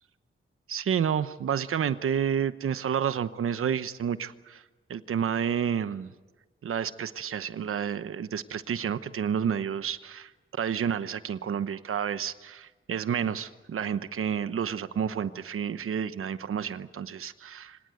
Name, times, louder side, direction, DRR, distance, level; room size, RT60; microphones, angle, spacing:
voice 1, 0.7-4.6 4.9-6.1 6.6-17.8, right 8 dB, 90° right, 13 dB, 1.0 m, -30 dB
25.5 x 18.0 x 9.2 m, 1.3 s
wide cardioid pair, 140°, 21 cm